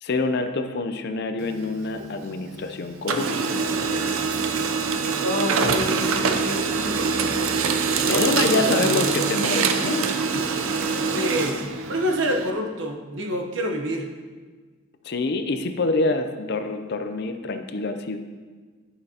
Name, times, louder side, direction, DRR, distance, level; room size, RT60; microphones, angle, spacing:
voice 1, 0.0-3.4 8.1-10.6 15.0-18.2, left 3 dB, 50° left, 8 dB, 0.5 m, -26 dB
Printer, 1.4-2.7 2.9-12.5, right 5 dB, 90° right, 0.6 m, -24 dB
voice 2, 5.2-7.5 8.0-9.2 11.1-11.6 11.9-14.1, equal, 60° right, 2 dB, 0.9 m, -28 dB
11.0 x 6.5 x 2.8 m, 1.5 s
head